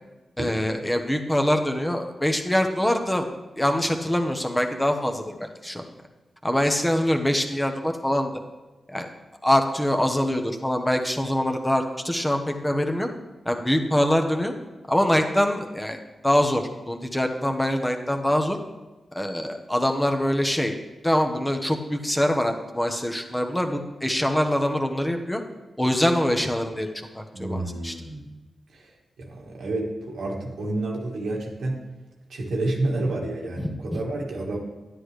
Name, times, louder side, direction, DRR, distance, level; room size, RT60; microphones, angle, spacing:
voice 1, 0.4-3.3 3.6-5.9 6.4-8.3 8.9-9.1 9.4-13.1 13.4-14.5 14.9-18.6 19.1-20.8 21.0-25.4 25.8-26.9 27.1-27.9 33.6-34.0, equal, 10° left, 4 dB, 1.1 m, -24 dB
voice 2, 27.3-28.3 28.7-31.8 32.3-34.6, right 2 dB, 90° right, -1 dB, 1.5 m, -29 dB
9.9 x 9.7 x 3.3 m, 1.2 s
cardioid pair, 55°, 0 cm